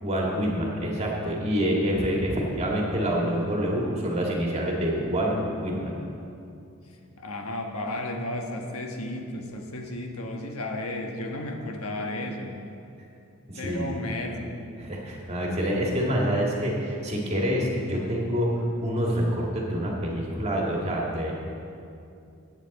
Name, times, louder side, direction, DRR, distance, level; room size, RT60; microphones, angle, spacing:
voice 1, 0.0-5.9 13.5-14.2 14.8-21.3, equal, 30° right, -2 dB, 1.8 m, -27 dB
voice 2, 7.2-12.6 13.6-14.5, left 1 dB, 80° left, 2 dB, 1.3 m, -33 dB
14.5 x 8.8 x 4.1 m, 2.6 s
head